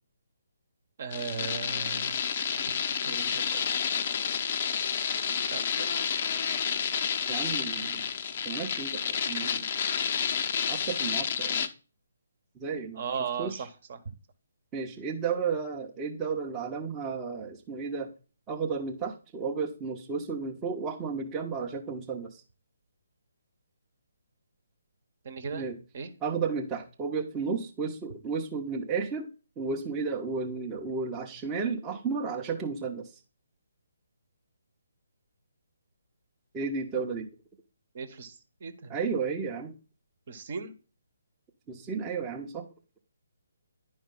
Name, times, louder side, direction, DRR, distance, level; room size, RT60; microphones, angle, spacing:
voice 1, 1.0-2.2 2.7-3.9 5.5-5.9 13.0-13.5 25.2-25.6 25.9-26.1 37.9-38.3 38.6-38.9 40.3-40.7, right 6 dB, 45° right, 10 dB, 1.1 m, -37 dB
sound 1, 1.1-11.7, left 7 dB, 40° left, 0.7 m, -30 dB
voice 2, 7.3-8.1 8.4-9.7 10.7-11.7 12.6-13.0 13.4-13.7 14.7-18.1 18.5-22.4 25.5-25.8 26.2-29.3 29.6-33.2 36.5-37.3 38.9-39.7 41.7-42.7, right 5 dB, 15° right, 0 dB, 0.9 m, -33 dB
10.5 x 5.3 x 3.8 m, 0.34 s
figure-of-eight pair, 140°, 0 cm